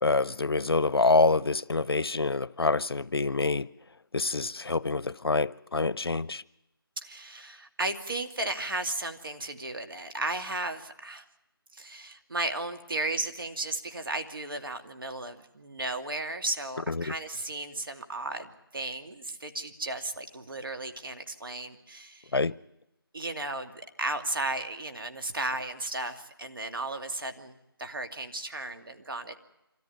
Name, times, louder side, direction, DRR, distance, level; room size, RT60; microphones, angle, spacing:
voice 1, 0.0-3.7 4.1-6.4 16.9-17.1 22.3-22.5, left 3 dB, 75° left, 0.7 m, -26 dB
voice 2, 7.0-11.3 11.7-22.4 23.1-29.3, right 2 dB, 60° right, 2.4 m, -35 dB
25.5 x 14.5 x 9.5 m
figure-of-eight pair, 165°, 13 cm